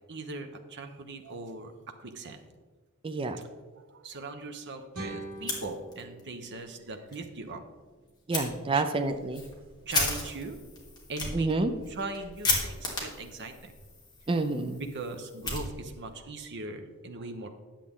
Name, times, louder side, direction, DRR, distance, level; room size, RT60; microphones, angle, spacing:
voice 1, 0.1-2.4 3.7-7.6 8.7-8.8 9.9-10.6 11.1-11.5 11.9-13.7 14.7-17.5, right 3 dB, 55° right, 6 dB, 0.9 m, -40 dB
voice 2, 3.0-3.4 8.3-9.4 11.3-11.7 14.3-14.8, right 3 dB, 25° right, 7 dB, 0.4 m, -28 dB
sound 1, 4.9-7.9, right 2 dB, 70° right, 2.3 m, -44 dB
Fire, 5.3-6.2 6.6-6.7 7.1-7.2 8.3-8.5 9.0-16.2, left 2 dB, 20° left, 2.0 m, -34 dB
10.0 x 7.4 x 3.7 m, 1.3 s
head